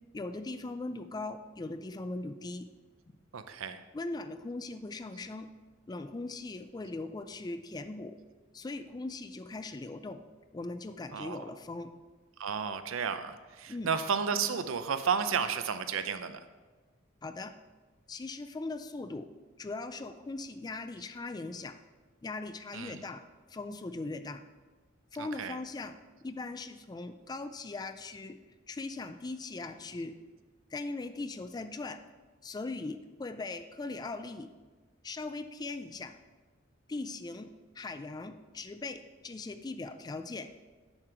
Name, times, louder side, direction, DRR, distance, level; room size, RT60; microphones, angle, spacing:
voice 1, 0.1-2.7 3.9-5.5 5.9-8.2 8.5-10.2 10.5-11.9 13.7-13.9 17.2-17.5 18.1-19.3 19.6-21.8 22.2-23.2 23.5-24.4 25.1-25.9 26.2-28.4 28.7-30.2 30.7-32.0 32.4-34.5 35.0-36.1 36.9-40.5, left 3 dB, 20° left, 10 dB, 0.3 m, -39 dB
voice 2, 3.3-3.8 11.1-11.4 12.4-16.4 22.7-23.0 25.2-25.6, right 6 dB, 75° right, 10 dB, 0.5 m, -32 dB
7.2 x 6.7 x 4.5 m, 1.3 s
head